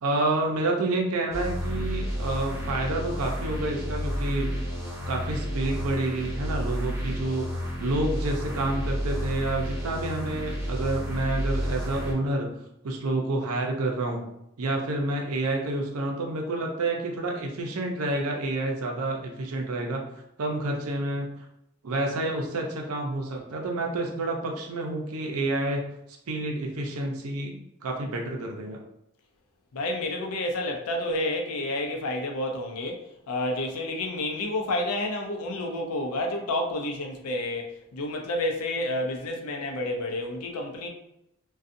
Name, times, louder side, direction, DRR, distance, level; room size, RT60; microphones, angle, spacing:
voice 1, 0.0-4.6 5.1-12.5 12.8-14.3 14.6-20.0 20.4-21.3 21.8-25.8 26.3-28.8, right 2 dB, 85° right, 2 dB, 0.5 m, -29 dB
sound 1, 1.3-12.1, equal, 10° right, 0.7 m, -31 dB
voice 2, 29.7-33.0 33.3-40.9, left 1 dB, 90° left, 2 dB, 0.5 m, -30 dB
2.6 x 2.3 x 2.5 m, 0.80 s
head